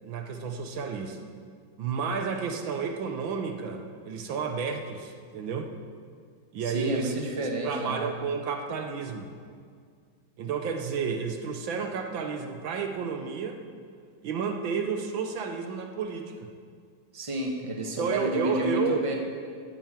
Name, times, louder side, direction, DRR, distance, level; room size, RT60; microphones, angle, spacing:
voice 1, 0.0-1.3 1.8-5.7 6.5-7.1 7.6-9.3 10.4-13.6 14.2-16.5 18.0-19.0, right 5 dB, 75° right, 5 dB, 1.7 m, -31 dB
voice 2, 6.6-8.0 17.1-19.1, right 1 dB, 15° right, 1 dB, 1.4 m, -30 dB
10.5 x 9.0 x 8.8 m, 2.1 s
omnidirectional pair, 2.2 m